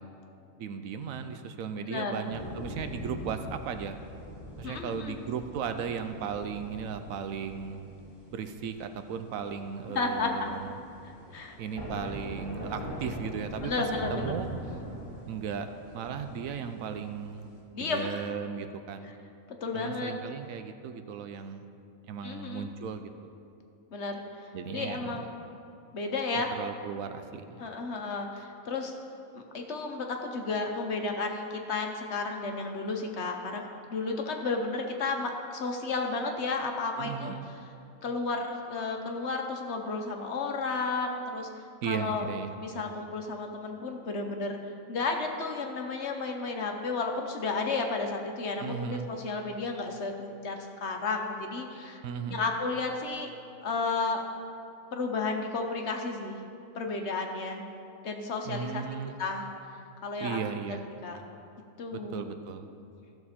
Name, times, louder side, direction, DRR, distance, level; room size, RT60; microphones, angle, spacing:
voice 1, 0.6-4.0 4.6-7.9 8.3-10.8 11.6-13.8 14.1-14.5 15.3-17.5 17.8-19.1 19.7-21.7 22.0-23.1 24.5-25.2 26.3-27.6 37.0-37.5 41.8-42.5 48.6-49.1 52.0-52.5 58.4-59.2 60.2-60.8 61.9-62.7, right 7 dB, 75° right, 9 dB, 1.0 m, -36 dB
voice 2, 1.8-2.3 4.6-5.2 9.9-10.5 11.3-11.6 13.6-14.3 17.7-18.2 19.6-20.1 22.2-22.7 23.9-25.3 25.9-26.5 27.6-29.0 29.3-33.6 33.9-37.3 38.0-41.5 41.9-42.3 42.6-44.6 44.9-52.0 52.3-53.3 53.6-54.2 54.9-56.4 56.7-57.6 58.0-58.8 59.2-59.5 60.0-60.4 60.6-60.8 61.0-61.2 61.8-62.3, left 3 dB, 55° left, 3 dB, 1.1 m, -32 dB
sound 1, 2.3-17.6, equal, 15° left, 2.4 m, -42 dB
14.5 x 6.8 x 4.2 m, 2.6 s
omnidirectional pair, 1.5 m